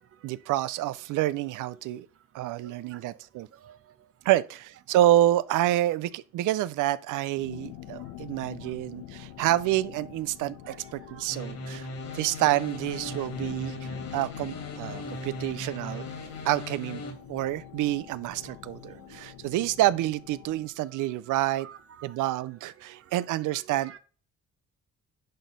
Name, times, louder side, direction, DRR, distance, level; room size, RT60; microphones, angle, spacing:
voice 1, 0.2-2.1 2.3-3.5 4.2-10.7 11.2-11.9 12.1-16.0 16.4-17.0 17.3-21.7 22.0-23.9, right 14 dB, 85° right, 0.6 m, -28 dB
sound 1, 7.4-20.7, left 12 dB, 90° left, 1.0 m, -45 dB
sound 2, 11.3-17.1, left 2 dB, 65° left, 2.8 m, -39 dB
voice 2, 12.9-13.5 18.9-19.0 20.9-21.0 21.3-22.2 22.9-24.0, right 8 dB, 50° right, 0.8 m, -50 dB
10.5 x 4.2 x 5.2 m
cardioid pair, 90°, 30 cm